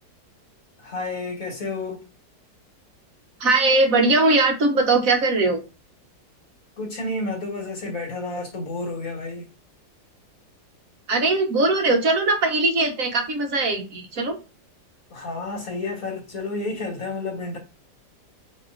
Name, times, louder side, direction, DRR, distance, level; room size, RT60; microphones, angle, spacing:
voice 1, 0.8-2.0 6.8-9.5 15.1-17.6, left 2 dB, 45° left, 2.5 m, -30 dB
voice 2, 3.4-5.6 11.1-14.4, right 2 dB, 50° right, 1.7 m, -20 dB
8.3 x 3.6 x 4.1 m
omnidirectional pair, 2.0 m